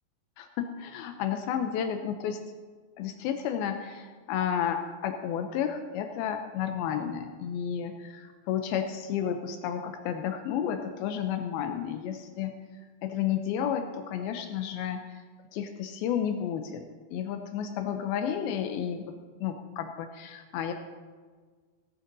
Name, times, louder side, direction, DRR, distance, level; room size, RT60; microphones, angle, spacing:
voice 1, 0.4-2.4 3.0-12.6 13.0-15.2 15.5-16.8 17.1-19.1 19.4-20.7, left 8 dB, 90° left, 6 dB, 2.1 m, -32 dB
17.0 x 11.0 x 2.7 m, 1.5 s
omnidirectional pair, 5.1 m